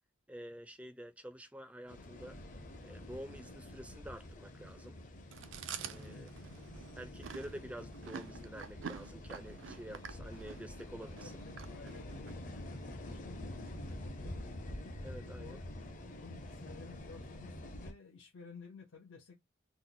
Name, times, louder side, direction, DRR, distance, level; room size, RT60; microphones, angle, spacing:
voice 1, 0.3-2.4 2.8-5.0 5.8-6.3 7.0-11.3 12.7-12.8 15.0-15.6, equal, 5° right, 0.4 m, -48 dB
sound 1, 1.9-17.9, left 1 dB, 40° left, 0.6 m, -47 dB
Chewing mastication, 5.3-12.3, right 7 dB, 80° right, 0.4 m, -47 dB
voice 2, 11.2-14.4 15.1-15.6 16.1-19.4, left 4 dB, 85° left, 0.7 m, -54 dB
3.0 x 2.1 x 3.7 m
head